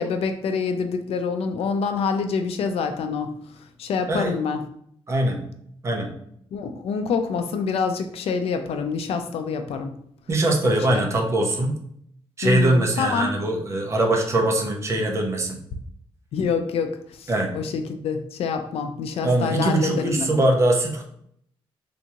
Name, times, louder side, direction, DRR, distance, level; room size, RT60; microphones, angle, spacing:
voice 1, 0.0-3.3 3.8-4.6 6.5-9.9 10.9-11.0 12.4-13.3 16.3-20.3, left 5 dB, 80° left, 7 dB, 0.4 m, -26 dB
voice 2, 5.1-5.4 5.8-6.1 10.3-11.7 12.4-15.6 17.3-17.5 19.2-21.0, right 1 dB, 30° right, 1 dB, 0.5 m, -22 dB
3.4 x 2.6 x 2.9 m, 0.69 s
wide cardioid pair, 175°, 10 cm